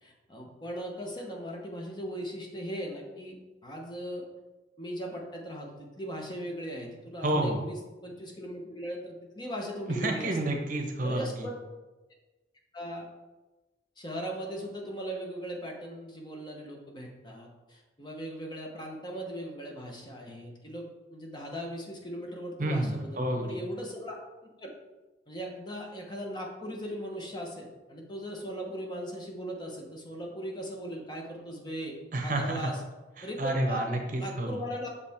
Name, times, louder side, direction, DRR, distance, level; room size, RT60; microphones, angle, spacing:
voice 1, 0.0-4.2 4.8-10.4 11.0-11.6 12.7-13.1 14.0-20.8 21.1-24.1 24.6-24.7 25.3-32.0 32.2-32.8 33.2-33.8 34.2-34.9, equal, 25° left, 0 dB, 1.0 m, -38 dB
voice 2, 7.2-7.6 9.9-11.4 22.6-23.6 32.1-32.7 33.2-34.6, right 1 dB, 45° right, 3 dB, 0.8 m, -30 dB
6.8 x 4.9 x 3.6 m, 1.1 s
head